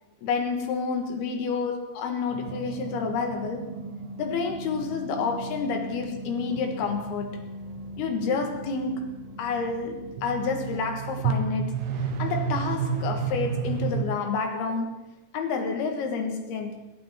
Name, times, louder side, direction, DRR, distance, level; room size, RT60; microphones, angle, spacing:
voice 1, 0.2-3.7 4.2-7.5 8.0-11.8 12.2-15.0 15.3-16.9, left 5 dB, 80° left, 3.5 m, -29 dB
sound 1, 2.3-14.1, right 5 dB, 90° right, 3.1 m, -33 dB
22.0 x 12.5 x 3.7 m
omnidirectional pair, 4.5 m